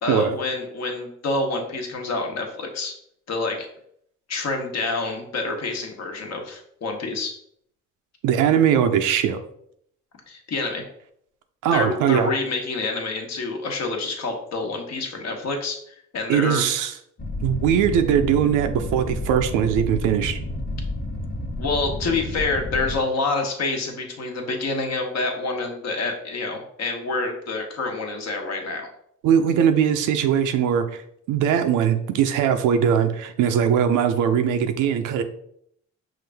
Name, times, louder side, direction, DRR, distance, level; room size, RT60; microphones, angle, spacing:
voice 1, 0.0-2.9 3.3-3.7 4.3-7.3 10.3-10.8 11.7-16.6 21.6-28.9, left 3 dB, 60° left, 3 dB, 1.1 m, -27 dB
voice 2, 8.2-9.4 11.6-12.3 16.3-16.9 17.4-20.4 29.2-30.9 31.3-35.2, right 8 dB, 90° right, 8 dB, 0.6 m, -20 dB
sound 1, 17.2-23.0, left 1 dB, 30° left, 1.0 m, -30 dB
5.6 x 2.5 x 3.4 m, 0.69 s
cardioid pair, 90°, 30 cm